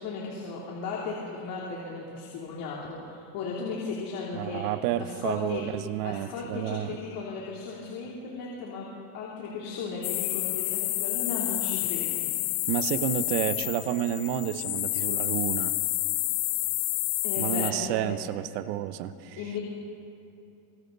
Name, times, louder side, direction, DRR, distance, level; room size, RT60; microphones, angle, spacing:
voice 1, 0.0-4.6 5.0-5.6 6.0-8.9 9.1-12.2 17.2-18.1 19.3-19.6, left 4 dB, 45° left, -4 dB, 3.4 m, -36 dB
voice 2, 4.3-7.0 12.7-15.8 17.4-19.4, right 12 dB, 70° right, 12 dB, 1.1 m, -30 dB
sound 1, 10.0-17.7, left 22 dB, 85° left, 0.6 m, -29 dB
25.5 x 25.5 x 4.1 m, 2.7 s
cardioid pair, 160°, 48 cm